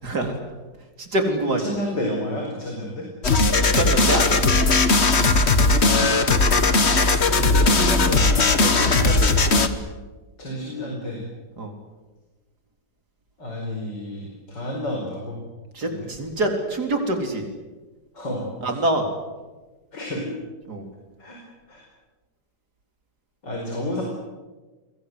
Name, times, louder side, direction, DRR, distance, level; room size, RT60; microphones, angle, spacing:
voice 1, 0.0-0.3 1.0-1.6 3.7-4.4 6.5-6.6 8.6-9.3 11.6-11.7 15.7-17.4 18.6-19.1 20.7-20.8, right 1 dB, 60° right, 4 dB, 4.4 m, -25 dB
voice 2, 1.4-3.0 5.4-6.2 7.3-8.5 10.4-11.2 13.4-15.4 15.8-16.1 18.1-18.8 19.9-20.3 21.2-21.4 21.7-21.8 23.4-24.0, left 1 dB, 75° left, 0 dB, 5.6 m, -30 dB
sound 1, 3.2-9.7, left 3 dB, 40° left, 1.7 m, -18 dB
29.5 x 22.5 x 8.0 m, 1.2 s
omnidirectional pair, 1.9 m